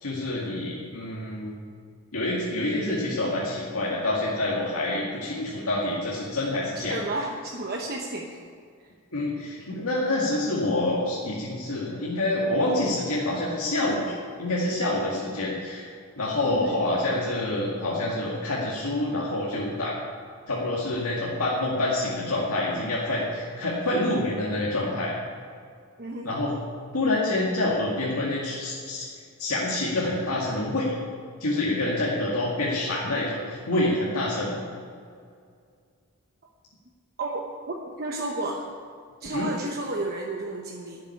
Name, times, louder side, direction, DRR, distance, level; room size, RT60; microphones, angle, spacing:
voice 1, 0.0-1.5 2.1-7.0 9.1-14.1 14.4-15.9 16.2-20.0 20.5-25.1 26.2-26.5 26.9-29.1 29.4-31.0 31.4-34.6 39.3-39.5, left 1 dB, 85° left, -5 dB, 2.1 m, -27 dB
voice 2, 6.8-8.4 8.8-8.9 16.4-16.8 26.0-26.3 37.2-38.7 39.2-41.0, right 2 dB, 45° right, 0 dB, 1.0 m, -32 dB
11.5 x 7.6 x 9.8 m, 2.2 s
head